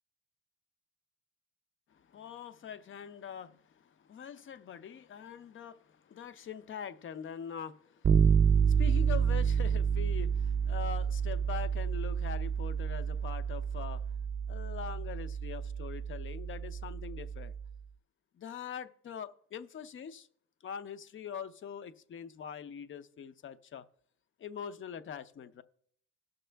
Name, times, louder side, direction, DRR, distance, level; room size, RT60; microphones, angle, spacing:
voice 1, 1.9-14.2 14.5-17.5 18.3-20.3 20.6-23.9 24.4-25.6, left 8 dB, 40° left, 0.6 m, -43 dB
Bass guitar, 8.0-17.7, right 7 dB, 35° right, 0.6 m, -29 dB
17.5 x 6.7 x 3.4 m
cardioid pair, 110°, 31 cm